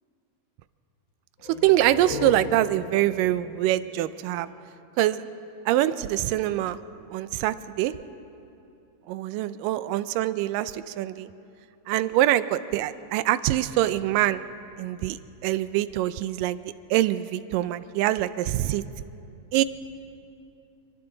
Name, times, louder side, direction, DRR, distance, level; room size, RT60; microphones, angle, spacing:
sound 1, 1.4-4.9, left 3 dB, 45° left, 2.7 m, -37 dB
voice 1, 1.6-4.5 5.0-5.2 5.7-6.8 7.1-7.9 9.1-11.3 11.9-14.4 14.8-15.2 15.4-16.6 16.9-18.9 19.5-19.6, right 14 dB, 80° right, 14 dB, 2.2 m, -24 dB
27.5 x 24.0 x 3.9 m, 2.7 s
omnidirectional pair, 4.0 m